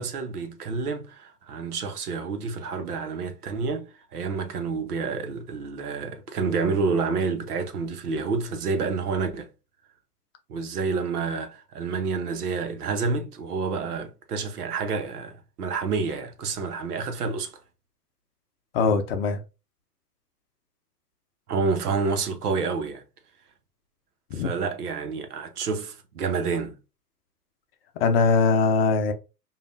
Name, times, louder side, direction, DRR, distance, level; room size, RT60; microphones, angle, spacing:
voice 1, 0.0-9.5 10.5-17.6 21.5-23.0 24.3-26.8, right 4 dB, 65° right, 1.0 m, -29 dB
voice 2, 18.7-19.4 24.3-24.5 28.0-29.1, left 4 dB, 40° left, 0.6 m, -21 dB
5.1 x 2.5 x 2.5 m
hypercardioid pair, 120°, 48 cm